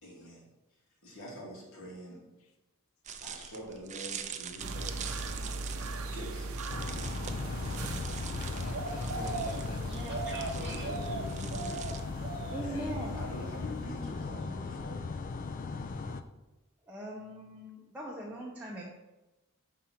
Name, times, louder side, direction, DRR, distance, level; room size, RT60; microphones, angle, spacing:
voice 1, 0.0-0.5 1.0-2.2 3.2-5.3 6.1-6.7 9.1-9.3 10.4-11.8 12.6-15.0, equal, 65° left, -4 dB, 2.4 m, -45 dB
sound 1, 3.0-12.0, right 8 dB, 35° right, 0.4 m, -45 dB
sound 2, 4.6-13.8 14.1-14.2, right 3 dB, 75° right, 0.6 m, -39 dB
sound 3, 6.7-16.2, left 4 dB, 40° left, 0.4 m, -38 dB
voice 2, 7.4-7.7 8.5-10.0 12.5-13.0, left 2 dB, 85° left, 6 dB, 0.8 m, -43 dB
voice 3, 9.8-10.9 12.5-13.2 16.9-18.8, right 1 dB, 5° right, -5 dB, 0.7 m, -41 dB
5.7 x 3.7 x 5.8 m, 1.0 s
head